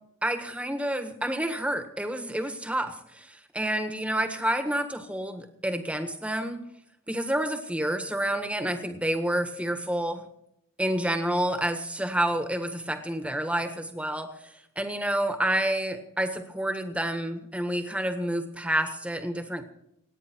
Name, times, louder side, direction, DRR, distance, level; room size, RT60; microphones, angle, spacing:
voice 1, 0.2-6.6 7.1-10.2 10.8-14.3 14.7-19.6, right 1 dB, 5° right, 7 dB, 1.5 m, -29 dB
27.5 x 9.7 x 4.6 m, 0.80 s
head